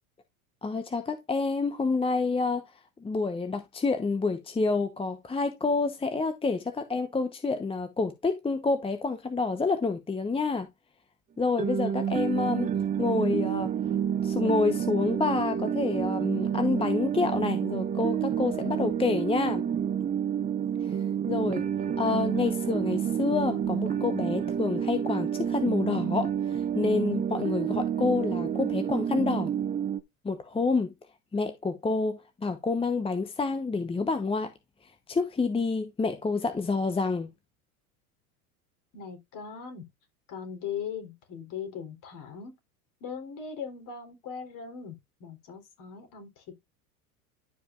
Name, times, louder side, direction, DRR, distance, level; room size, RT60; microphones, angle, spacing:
voice 1, 0.6-2.6 3.0-10.7 11.4-12.7 13.0-13.7 14.2-19.6 20.8-20.9 21.3-21.7 22.0-29.5 30.2-30.9 31.3-34.5 35.1-37.3, left 4 dB, 10° left, 1.0 m, -28 dB
sound 1, 11.6-30.0, right 9 dB, 20° right, 0.6 m, -29 dB
voice 2, 38.9-39.9 40.3-42.5 43.0-46.6, left 7 dB, 45° left, 3.8 m, -39 dB
12.0 x 5.2 x 2.5 m
hypercardioid pair, 95°, 44 cm